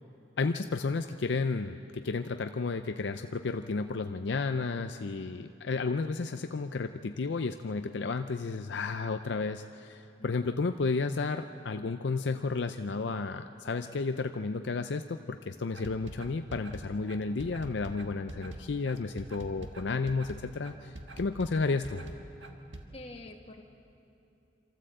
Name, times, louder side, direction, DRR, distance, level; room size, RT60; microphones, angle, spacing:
voice 1, 0.4-22.0, left 4 dB, 70° left, 8 dB, 0.5 m, -32 dB
sound 1, 15.7-22.8, right 1 dB, 75° right, 1.5 m, -44 dB
voice 2, 22.9-23.6, left 2 dB, 30° left, 1 dB, 1.6 m, -46 dB
26.5 x 13.5 x 7.7 m, 2.8 s
head